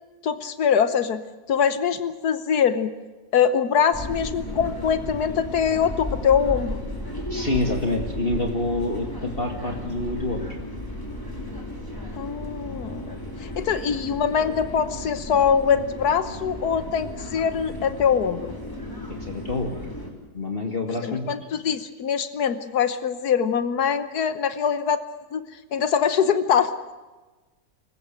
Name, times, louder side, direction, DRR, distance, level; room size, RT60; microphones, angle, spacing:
voice 1, 0.2-1.2 1.5-2.9 3.3-6.8 12.1-18.5 21.0-25.0 25.3-25.4 25.7-26.7, left 7 dB, 80° left, 12 dB, 1.6 m, -23 dB
sound 1, 3.9-20.1, left 1 dB, 15° left, 3.7 m, -34 dB
voice 2, 7.3-10.5 19.1-19.8 20.3-21.3, left 2 dB, 35° left, 3 dB, 2.2 m, -27 dB
25.5 x 15.0 x 8.9 m, 1.2 s
omnidirectional pair, 1.6 m